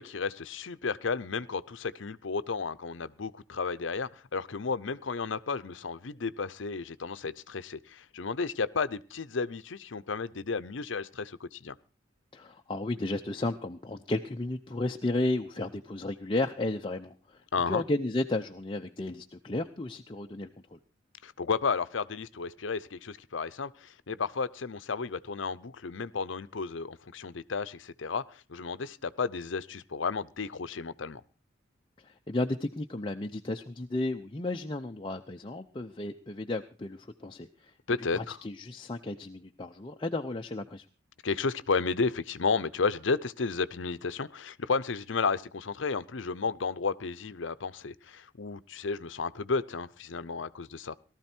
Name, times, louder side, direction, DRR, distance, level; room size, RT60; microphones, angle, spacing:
voice 1, 0.0-11.8 17.5-17.8 21.2-31.2 37.9-38.4 41.2-51.0, left 4 dB, 70° left, 14 dB, 0.7 m, -33 dB
voice 2, 12.3-20.8 32.0-37.7 38.1-40.9, left 2 dB, 25° left, 3 dB, 0.7 m, -33 dB
18.5 x 13.0 x 4.5 m, 0.35 s
head